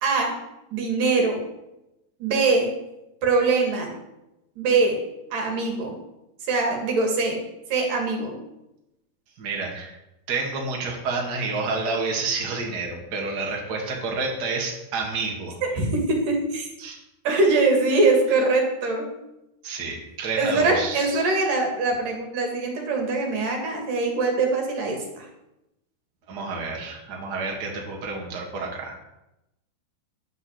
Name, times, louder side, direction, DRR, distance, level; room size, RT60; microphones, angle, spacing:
voice 1, 0.0-0.3 0.7-1.4 2.2-2.7 3.2-3.9 4.6-5.0 5.3-6.0 6.5-7.4 7.7-8.4 15.7-16.7 17.2-19.1 20.4-25.3, right 3 dB, 50° right, 2 dB, 2.9 m, -22 dB
voice 2, 9.4-9.9 10.3-15.6 16.8-17.0 19.6-21.2 26.3-29.0, right 4 dB, 80° right, 0 dB, 0.9 m, -29 dB
11.0 x 7.4 x 7.9 m, 0.92 s
omnidirectional pair, 5.9 m